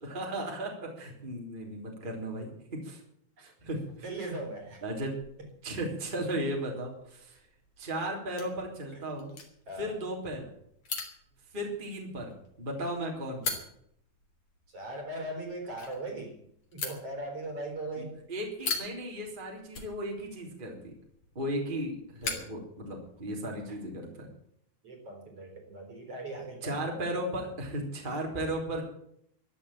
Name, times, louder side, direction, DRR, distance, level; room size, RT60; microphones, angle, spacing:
voice 1, 0.0-3.0 3.4-3.8 4.8-5.2 5.6-7.4 7.8-9.3 9.8-10.5 11.5-13.5 17.9-20.9 21.3-24.3 26.6-28.8, right 1 dB, 15° right, 0 dB, 3.3 m, -35 dB
sound 1, 3.7-23.4, left 4 dB, 35° left, 3.9 m, -43 dB
voice 2, 4.0-4.8 5.4-5.5 8.9-9.0 9.7-9.9 14.7-16.4 16.7-18.2 23.7-23.8 24.8-26.8, right 2 dB, 40° right, 4 dB, 4.5 m, -39 dB
14.0 x 11.5 x 8.7 m, 0.70 s
omnidirectional pair, 4.4 m